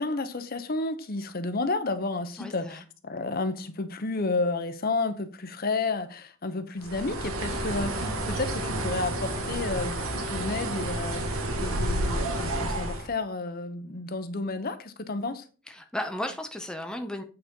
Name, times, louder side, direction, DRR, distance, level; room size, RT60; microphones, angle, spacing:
voice 1, 0.0-15.4, left 3 dB, 45° left, 0.8 m, -31 dB
voice 2, 2.4-2.8 15.7-17.2, left 1 dB, 5° left, 0.7 m, -34 dB
Bird, 6.8-13.1, right 1 dB, 90° right, 1.7 m, -30 dB
8.7 x 4.2 x 5.3 m
head